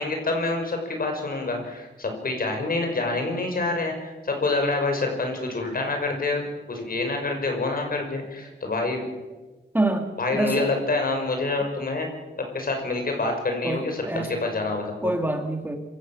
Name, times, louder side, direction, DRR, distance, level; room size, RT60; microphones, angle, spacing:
voice 1, 0.0-9.0 10.2-12.1 12.5-15.1, left 3 dB, 50° left, 3 dB, 6.0 m, -27 dB
voice 2, 9.7-10.8 13.6-14.3 15.0-15.8, right 2 dB, 10° right, 5 dB, 2.0 m, -26 dB
26.5 x 16.5 x 7.5 m, 1.2 s
wide cardioid pair, 135°, 19 cm